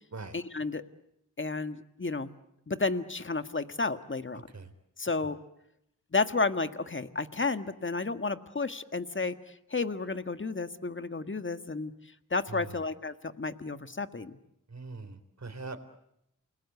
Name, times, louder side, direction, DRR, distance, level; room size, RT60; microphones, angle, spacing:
voice 1, 0.3-0.8 1.4-2.3 2.7-4.4 5.0-5.4 6.1-11.9 12.3-14.4, left 3 dB, 40° left, 10 dB, 1.7 m, -32 dB
voice 2, 4.3-4.7 12.5-12.8 14.7-15.8, right 3 dB, 55° right, 9 dB, 3.7 m, -42 dB
29.0 x 21.0 x 8.2 m, 0.80 s
cardioid pair, 45°, 32 cm